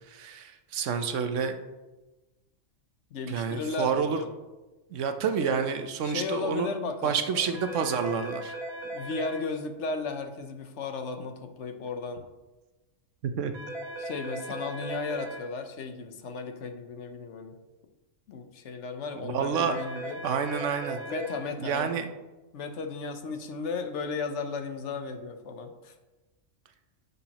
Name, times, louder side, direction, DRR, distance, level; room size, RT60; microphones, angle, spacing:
voice 1, 0.1-1.6 3.3-4.2 4.9-6.7 7.0-8.5 13.2-13.5 19.2-19.8 20.2-21.0 21.6-22.0, right 6 dB, 70° right, 8 dB, 1.0 m, -29 dB
voice 2, 3.1-4.3 6.0-7.6 8.8-12.2 14.0-17.6 18.3-20.2 21.1-21.9 22.5-25.9, left 4 dB, 65° left, 7 dB, 1.0 m, -35 dB
sound 1, 7.5-9.4 13.5-15.4 19.5-21.4, right 1 dB, 50° right, 1.7 m, -37 dB
10.0 x 6.9 x 2.9 m, 1.1 s
omnidirectional pair, 1.3 m